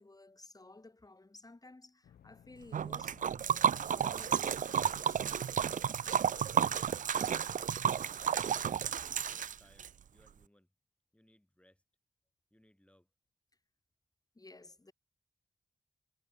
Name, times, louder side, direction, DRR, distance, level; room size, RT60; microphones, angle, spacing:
voice 1, 0.0-3.2 3.6-5.2 14.3-14.9, left 2 dB, 25° left, 2.3 m, -55 dB
sound 1, 2.0-9.8, left 9 dB, 90° left, 1.6 m, -65 dB
Liquid, 2.7-9.9, right 8 dB, 60° right, 0.5 m, -32 dB
voice 2, 6.1-6.8 7.1-10.7 11.1-11.8 12.5-13.1, left 1 dB, 10° left, 7.5 m, -67 dB
cardioid pair, 55°, 15 cm